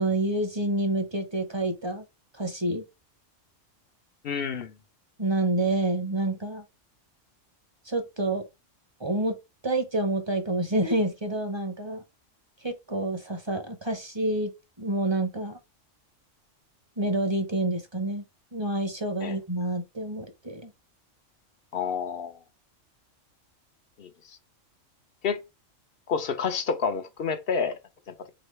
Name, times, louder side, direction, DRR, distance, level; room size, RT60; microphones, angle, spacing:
voice 1, 0.0-2.0 2.3-2.8 5.2-6.6 7.8-8.4 9.0-9.4 9.6-12.0 12.6-14.5 14.8-15.6 17.0-18.2 18.5-20.7, right 1 dB, 25° right, 0.8 m, -28 dB
voice 2, 4.2-4.7 19.2-19.4 21.7-22.4 24.0-24.4 25.2-25.4 26.1-27.8, left 6 dB, 55° left, 0.8 m, -29 dB
4.0 x 3.7 x 3.2 m
omnidirectional pair, 1.3 m